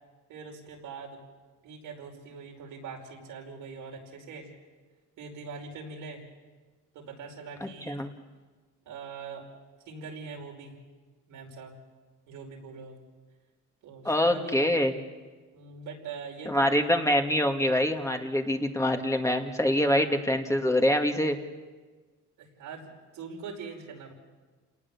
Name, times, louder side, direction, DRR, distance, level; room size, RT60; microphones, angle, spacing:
voice 1, 0.3-1.2 1.6-4.5 5.2-6.2 6.9-8.0 8.8-9.5 9.8-10.8 11.3-11.8 12.3-13.0 13.8-14.7 15.5-16.9 20.0-20.2 22.4-24.1, right 4 dB, 85° right, 1 dB, 5.1 m, -42 dB
voice 2, 7.6-8.1 14.0-14.9 16.5-21.4, left 1 dB, 10° left, 4 dB, 2.0 m, -25 dB
28.0 x 19.0 x 7.2 m, 1.4 s
cardioid pair, 95°, 31 cm